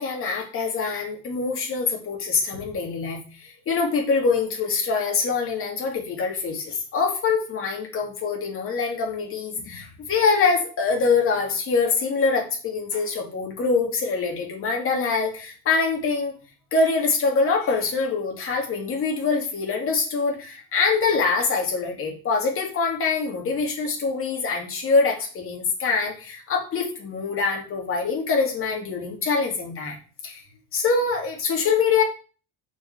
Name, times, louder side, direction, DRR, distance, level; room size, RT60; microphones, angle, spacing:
voice 1, 0.0-16.3 16.7-30.0 30.2-30.4 30.7-32.0, left 4 dB, 35° left, 1 dB, 2.4 m, -24 dB
7.0 x 5.1 x 6.7 m, 0.36 s
cardioid pair, 175°, 37 cm